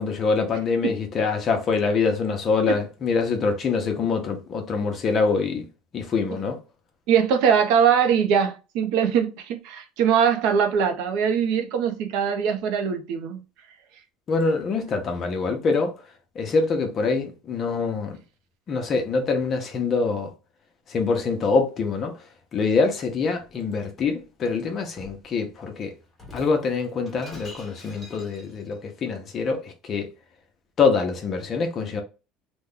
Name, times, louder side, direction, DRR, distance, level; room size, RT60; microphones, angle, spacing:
voice 1, 0.0-5.7 5.9-6.6 14.3-16.0 16.3-18.2 18.7-20.3 20.9-22.2 22.5-25.9 26.3-30.1 30.8-32.0, left 4 dB, 30° left, 0.7 m, -24 dB
voice 2, 7.1-13.4, right 7 dB, 70° right, 0.6 m, -22 dB
Shatter, 23.4-24.2 25.0-25.3 26.1-28.8, left 2 dB, 10° left, 1.1 m, -46 dB
3.0 x 2.2 x 3.6 m
cardioid pair, 160°, 0 cm